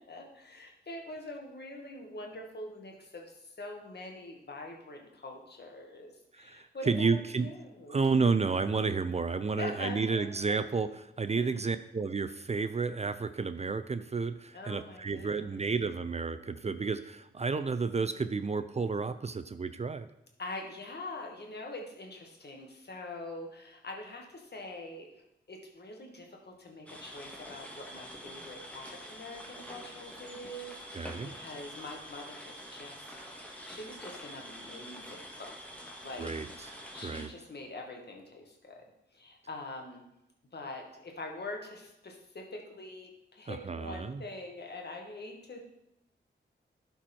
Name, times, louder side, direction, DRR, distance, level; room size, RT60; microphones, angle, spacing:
voice 1, 0.0-8.0 9.6-10.6 11.4-11.5 14.5-15.6 20.4-25.1 25.5-33.1 33.7-35.6 36.0-36.4 36.9-38.8 39.1-40.0 40.5-45.6, left 2 dB, 55° left, 1 dB, 1.9 m, -44 dB
voice 2, 6.3-7.5 7.9-20.1 30.9-31.4 36.2-37.3 43.5-44.2, right 4 dB, 35° right, 11 dB, 0.5 m, -31 dB
sound 1, 26.9-37.3, equal, 5° left, 1.8 m, -46 dB
11.5 x 4.6 x 4.4 m, 0.85 s
cardioid pair, 50°, 20 cm